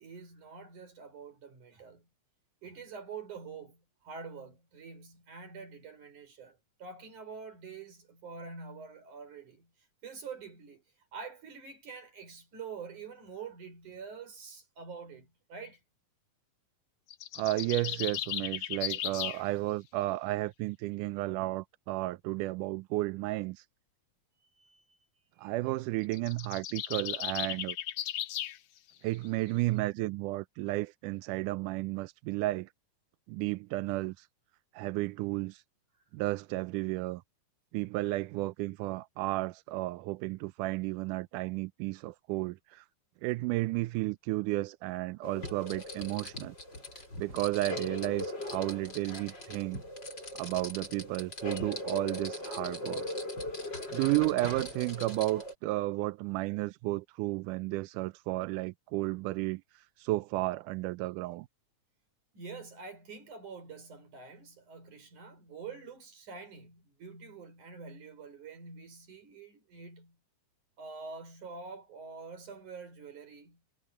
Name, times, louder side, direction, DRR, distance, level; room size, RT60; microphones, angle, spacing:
voice 1, 0.0-2.1 2.6-9.7 10.0-10.8 11.1-15.8 24.6-24.8 25.4-25.5 62.3-70.2 70.8-73.6, right 5 dB, 70° right, 7.2 m, -46 dB
sound 1, 17.1-19.4 26.0-28.6, left 12 dB, 70° left, 1.9 m, -36 dB
voice 2, 17.4-23.7 25.4-27.8 29.0-32.7 33.3-34.3 34.7-35.6 36.1-37.2 37.7-42.9 43.2-46.6 47.2-49.8 50.4-53.1 53.9-61.5, right 19 dB, 85° right, 2.1 m, -33 dB
sound 2, 45.2-55.5, left 1 dB, 30° left, 7.5 m, -39 dB
omnidirectional pair, 3.6 m